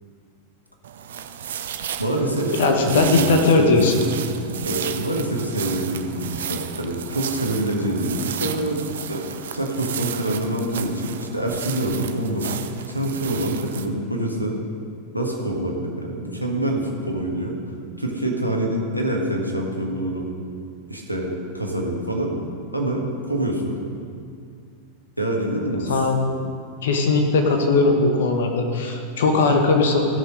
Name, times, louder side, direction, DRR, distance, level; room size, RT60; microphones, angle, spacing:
sound 1, 0.8-13.9, right 9 dB, 60° right, 0.7 m, -33 dB
voice 1, 2.0-4.2 4.4-12.6 12.9-14.6 15.1-17.6 18.0-20.3 20.9-22.3 22.7-23.8 25.2-26.0, right 1 dB, 90° left, 1 dB, 1.8 m, -26 dB
voice 2, 2.5-3.9 25.9-26.3 26.8-30.1, left 3 dB, 60° left, 4 dB, 1.4 m, -19 dB
16.5 x 6.4 x 5.3 m, 2.3 s
figure-of-eight pair, 90°, 0 cm